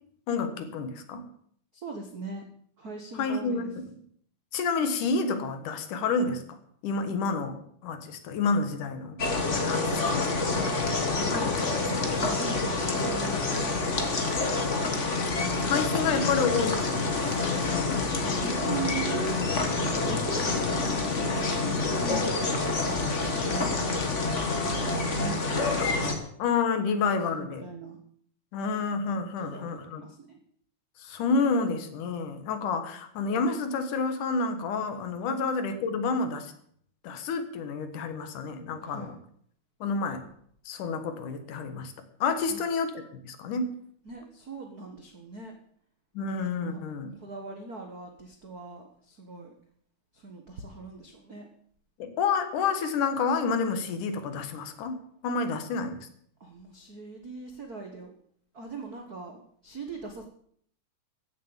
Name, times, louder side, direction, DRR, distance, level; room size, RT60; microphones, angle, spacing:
voice 1, 0.3-1.3 3.1-4.0 4.5-6.6 6.8-9.2 9.7-10.3 15.4-18.4 26.4-27.7 28.5-30.0 31.0-36.5 37.0-39.2 39.8-40.2 40.7-41.9 42.2-43.7 46.1-47.2 52.0-56.1, left 4 dB, 70° left, 9 dB, 2.8 m, -29 dB
voice 2, 1.7-2.5 2.8-3.7 11.1-14.2 17.7-22.0 22.8-24.3 25.2-25.6 26.1-26.3 27.3-28.0 29.4-30.4 35.2-35.4 38.8-39.2 42.4-42.6 44.0-45.5 46.6-46.8 47.1-49.5 50.1-51.5 56.4-58.1 58.5-60.2, right 4 dB, 65° right, 3 dB, 0.9 m, -40 dB
sound 1, 9.2-26.1, left 3 dB, 40° left, 1.0 m, -27 dB
15.0 x 7.5 x 7.2 m, 0.62 s
omnidirectional pair, 3.9 m